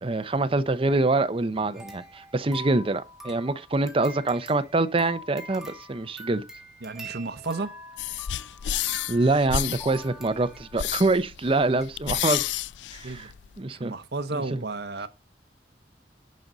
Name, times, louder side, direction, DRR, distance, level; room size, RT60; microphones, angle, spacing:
voice 1, 0.0-6.4 9.1-12.4 12.9-13.3 13.6-13.9 14.3-14.6, right 2 dB, 30° right, 0.6 m, -25 dB
sound 1, 1.7-10.9 11.4-11.5 11.8-11.9, equal, 5° right, 1.9 m, -44 dB
voice 2, 6.8-7.7 13.0-13.3 13.7-15.1, right 3 dB, 65° right, 0.8 m, -32 dB
sound 2, 8.0-13.6, left 11 dB, 80° left, 0.4 m, -31 dB
10.5 x 5.4 x 3.9 m
head